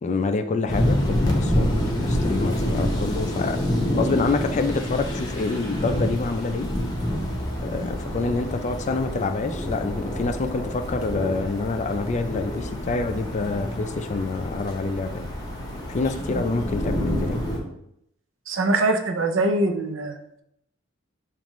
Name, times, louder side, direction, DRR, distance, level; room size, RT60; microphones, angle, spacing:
voice 1, 0.0-1.7 2.0-3.6 3.9-6.7 7.6-15.3 15.9-17.4, left 3 dB, 35° left, 7 dB, 0.3 m, -27 dB
sound 1, 0.7-17.6, equal, 20° left, 0.8 m, -27 dB
sound 2, 6.9-17.2, equal, 50° right, 0.9 m, -40 dB
voice 2, 18.5-20.2, right 2 dB, 75° right, 6 dB, 0.6 m, -23 dB
6.9 x 2.5 x 3.0 m, 0.76 s
head